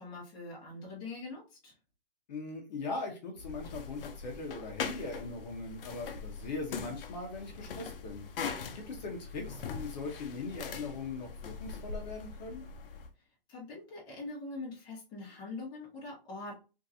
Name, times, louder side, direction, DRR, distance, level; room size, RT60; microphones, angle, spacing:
voice 1, 0.0-1.7 13.5-16.6, left 3 dB, 15° left, -5 dB, 1.1 m, -43 dB
voice 2, 2.3-8.2 8.7-12.7, left 3 dB, 45° left, 1 dB, 1.0 m, -40 dB
sound 1, 3.4-13.1, left 5 dB, 65° left, 0.6 m, -42 dB
3.7 x 2.7 x 2.7 m, 0.32 s
hypercardioid pair, 165°, 30 cm